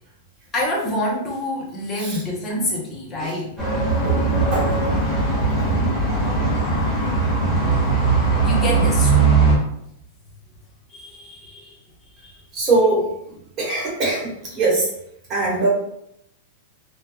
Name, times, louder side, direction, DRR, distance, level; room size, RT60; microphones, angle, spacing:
voice 1, 0.5-3.5 8.4-9.1 10.9-11.8 12.2-12.4, left 1 dB, 20° left, -3 dB, 0.7 m, -26 dB
sound 1, 3.6-9.6, right 3 dB, 5° right, 1.0 m, -19 dB
voice 2, 3.9-4.2 4.5-4.8 12.5-13.1 13.6-14.9 15.3-15.7, right 2 dB, 30° right, -5 dB, 1.1 m, -21 dB
3.1 x 2.2 x 2.2 m, 0.76 s
supercardioid pair, 150°, 0 cm